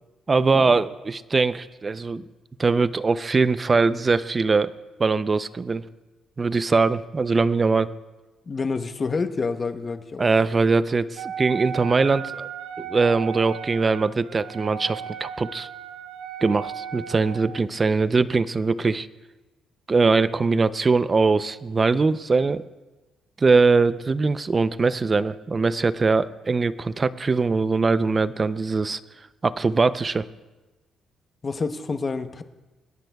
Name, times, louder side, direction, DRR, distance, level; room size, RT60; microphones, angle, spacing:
voice 1, 0.3-2.2 2.6-4.7 5.0-5.8 6.4-7.9 10.2-12.5 12.8-15.7 16.4-19.1 19.9-22.6 23.4-29.0 29.4-30.3, right 4 dB, 30° right, 15 dB, 0.5 m, -21 dB
voice 2, 8.5-10.3 31.4-32.4, left 4 dB, 35° left, 9 dB, 0.8 m, -28 dB
Wind instrument woodwind instrument, 11.2-17.6, right 8 dB, 85° right, 0.6 m, -36 dB
25.5 x 10.5 x 2.3 m, 1.1 s
cardioid pair, 90°, 0 cm